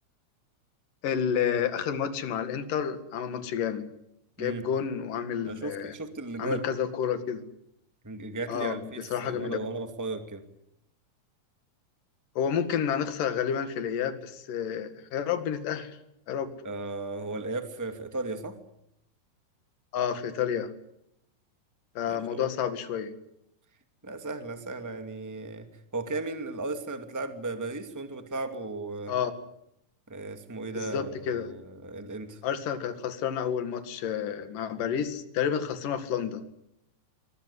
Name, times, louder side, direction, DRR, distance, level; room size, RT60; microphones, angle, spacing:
voice 1, 1.0-3.9 4.4-5.9 6.4-7.4 8.5-9.6 12.4-16.0 16.3-16.5 19.9-20.7 21.9-23.1 29.1-29.3 30.7-31.5 32.4-36.5, left 8 dB, 60° left, 10 dB, 3.4 m, -30 dB
voice 2, 5.4-6.6 8.0-10.4 16.6-18.6 22.0-22.5 24.0-29.1 30.1-32.4, right 3 dB, 10° right, 7 dB, 1.0 m, -36 dB
23.5 x 20.0 x 9.8 m, 0.80 s
omnidirectional pair, 4.7 m